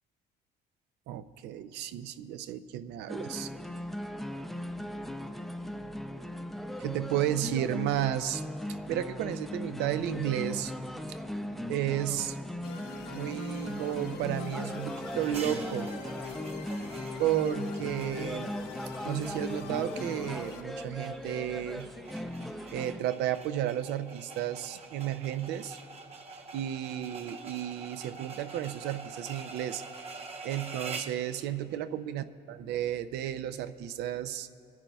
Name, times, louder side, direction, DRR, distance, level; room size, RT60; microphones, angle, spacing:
voice 1, 1.1-3.5 6.8-8.4 8.9-10.7 11.1-11.2 11.7-12.4 13.1-15.9 17.2-18.5 19.0-21.9 22.7-25.8 26.5-29.8 30.4-34.5, right 11 dB, 80° right, 12 dB, 0.5 m, -33 dB
sound 1, 3.1-23.0, left 1 dB, ahead, 0.5 m, -38 dB
sound 2, 12.6-20.6, left 7 dB, 90° left, 0.8 m, -45 dB
sound 3, 15.2-31.2, right 4 dB, 35° right, 1.0 m, -46 dB
26.0 x 10.5 x 2.3 m, 2.8 s
cardioid pair, 110°, 17 cm